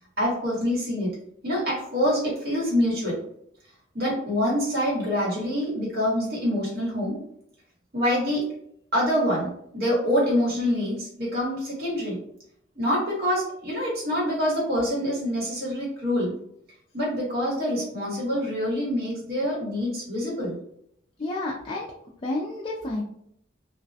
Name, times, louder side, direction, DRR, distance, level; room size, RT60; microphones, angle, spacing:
voice 1, 0.2-1.1 1.4-3.2 3.9-7.2 7.9-8.5 8.9-12.2 12.8-16.4 16.9-20.6, equal, 55° right, -5 dB, 1.2 m, -26 dB
voice 2, 21.2-21.9 22.2-23.0, left 2 dB, 30° left, -3 dB, 0.3 m, -30 dB
2.3 x 2.1 x 2.6 m, 0.70 s
head